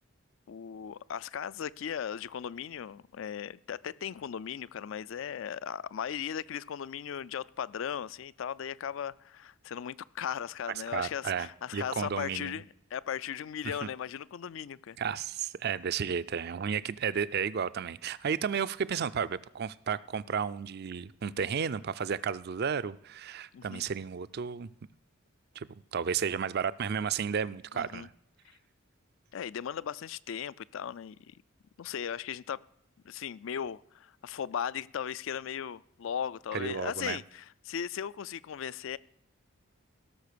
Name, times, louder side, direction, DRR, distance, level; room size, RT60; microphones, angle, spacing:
voice 1, 0.5-12.7 12.9-15.0 23.5-23.8 27.7-28.1 28.4-28.5 29.3-31.4 31.8-32.6 33.0-39.0, left 8 dB, 65° left, 0.4 m, -37 dB
voice 2, 10.9-11.5 11.7-12.6 13.6-13.8 15.0-24.7 25.6-28.1 36.5-37.2, right 7 dB, 50° right, 0.4 m, -33 dB
17.0 x 6.5 x 6.8 m
head